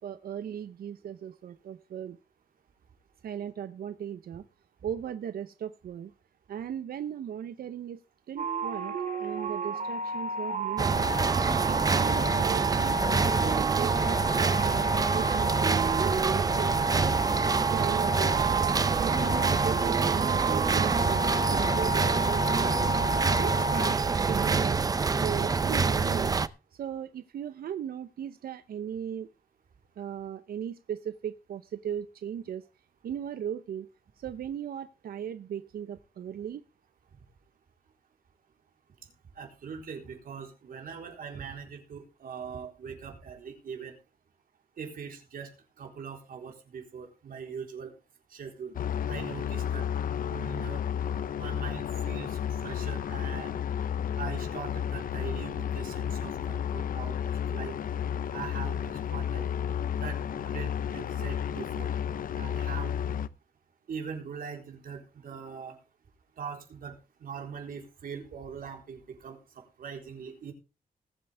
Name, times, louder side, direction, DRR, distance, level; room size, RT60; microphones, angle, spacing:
voice 1, 0.0-2.2 3.2-4.4 4.8-6.1 6.5-8.0 8.3-8.9 9.2-11.0 11.7-17.1 17.7-18.5 18.9-22.9 23.4-26.4 26.7-29.3 30.0-32.7 33.0-33.9 34.2-36.6, right 9 dB, 90° right, 11 dB, 0.7 m, -37 dB
sound 1, 8.4-24.6, right 2 dB, 60° right, 2.3 m, -32 dB
sound 2, 10.8-26.5, right 4 dB, 25° right, 0.6 m, -26 dB
voice 2, 39.4-43.9 44.8-45.5 45.8-47.9 48.3-48.7 49.1-49.8 50.3-50.8 51.4-53.6 54.2-57.8 58.3-59.5 60.0-61.9 62.3-62.9 63.9-65.8 66.4-67.0 67.2-70.5, right 6 dB, 75° right, 3 dB, 3.8 m, -41 dB
sound 3, 48.7-63.3, left 8 dB, 70° left, 0.7 m, -32 dB
20.0 x 7.9 x 3.4 m, 0.30 s
wide cardioid pair, 155°, 15 cm